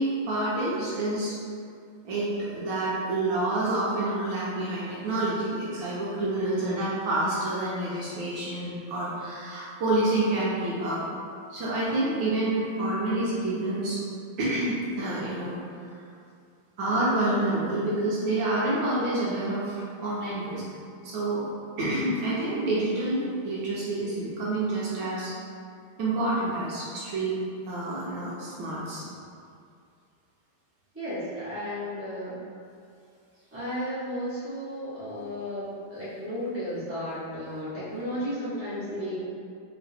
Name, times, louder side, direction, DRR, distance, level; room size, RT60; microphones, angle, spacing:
voice 1, 0.0-1.4 2.0-11.0 11.5-14.0 14.4-15.6 16.8-20.6 21.0-21.4 21.8-25.3 26.0-27.3 27.7-29.0, right 2 dB, 70° right, -8 dB, 1.4 m, -28 dB
voice 2, 6.3-6.9 30.9-32.3 33.5-39.2, equal, 10° right, -13 dB, 0.9 m, -33 dB
3.5 x 2.9 x 3.3 m, 2.3 s
omnidirectional pair, 2.4 m